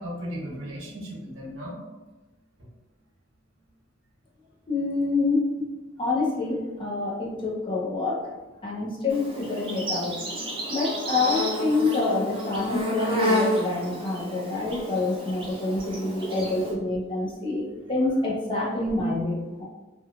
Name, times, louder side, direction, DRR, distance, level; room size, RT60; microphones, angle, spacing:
voice 1, 0.0-1.7 7.3-7.5 8.7-9.4 10.1-10.6 16.1-16.2 17.7-17.8, equal, 80° right, -3 dB, 0.8 m, -38 dB
voice 2, 4.7-5.7 6.0-8.3 8.6-10.1 10.7-19.6, left 3 dB, 25° left, -4 dB, 0.5 m, -27 dB
Insect, 9.1-16.7, equal, 25° right, 0.5 m, -30 dB
2.9 x 2.2 x 2.3 m, 1.2 s
head